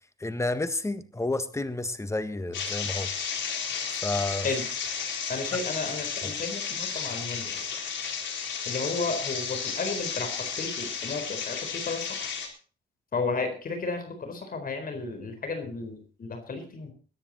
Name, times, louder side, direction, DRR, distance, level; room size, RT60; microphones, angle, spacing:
voice 1, 0.2-3.1 4.0-4.5, left 2 dB, 15° left, 11 dB, 1.6 m, -30 dB
sound 1, 2.5-12.5, left 6 dB, 65° left, 4.1 m, -33 dB
voice 2, 5.3-7.6 8.7-12.3 13.1-16.9, left 3 dB, 45° left, 7 dB, 4.3 m, -33 dB
22.0 x 10.0 x 4.3 m, 0.40 s
cardioid pair, 90°, 20 cm